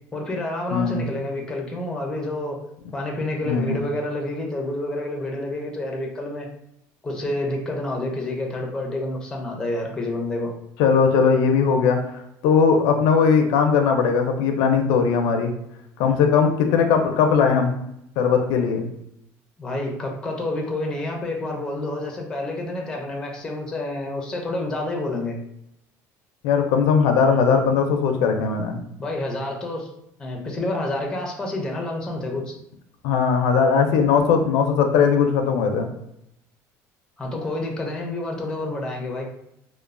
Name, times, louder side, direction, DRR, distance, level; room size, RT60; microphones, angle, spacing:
voice 1, 0.1-2.6 2.9-6.5 7.0-10.5 16.0-16.3 19.6-25.4 29.0-29.9 30.2-32.5 37.2-39.3, left 1 dB, 10° left, 0 dB, 0.4 m, -28 dB
voice 2, 0.7-1.1 3.4-3.8 10.8-12.0 12.4-15.5 16.0-17.8 18.2-18.9 26.4-28.8 33.0-35.9, left 6 dB, 80° left, 5 dB, 0.4 m, -19 dB
3.0 x 2.0 x 2.4 m, 0.78 s
cardioid pair, 155°, 7 cm